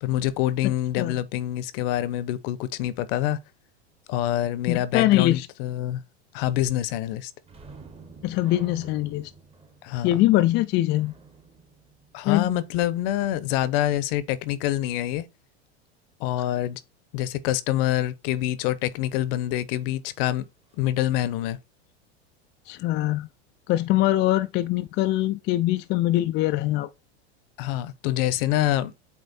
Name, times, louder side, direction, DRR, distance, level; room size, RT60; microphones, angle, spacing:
voice 1, 0.0-3.4 4.1-6.0 6.3-7.3 9.8-10.2 12.1-15.3 16.2-16.8 17.1-20.5 20.8-21.6 27.6-28.9, left 13 dB, 55° left, 0.9 m, -26 dB
voice 2, 4.7-5.5 8.2-9.3 10.0-11.1 12.2-12.5 22.7-23.3 23.7-26.9, left 15 dB, 35° left, 0.4 m, -23 dB
sound 1, 7.4-12.8 20.2-20.3 20.7-20.9, right 3 dB, 15° right, 1.3 m, -49 dB
8.3 x 3.1 x 4.2 m
hypercardioid pair, 105°, 33 cm